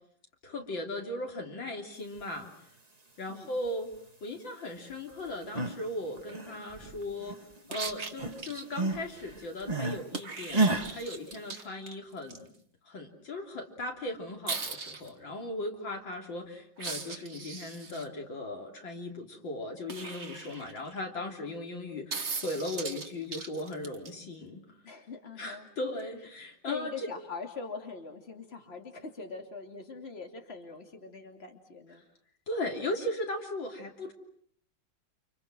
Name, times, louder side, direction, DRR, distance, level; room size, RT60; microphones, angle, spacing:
voice 1, 0.4-2.7 3.2-3.9 4.2-7.4 7.7-12.5 12.9-24.6 25.4-26.9 32.5-34.1, left 1 dB, 75° left, 2 dB, 4.0 m, -37 dB
sound 1, 5.3-5.8 6.2-7.6 7.9-10.0 10.5-10.9, right 2 dB, 20° right, 2.1 m, -31 dB
sound 2, 7.7-8.5 10.1-12.4 14.5-15.1 16.8-18.0 19.9-21.0 22.1-24.1 26.0-26.1, right 4 dB, 35° right, 1.9 m, -38 dB
voice 2, 24.8-25.7 26.7-32.0, left 4 dB, 30° left, 3 dB, 3.1 m, -42 dB
30.0 x 28.0 x 6.2 m, 0.63 s
omnidirectional pair, 2.1 m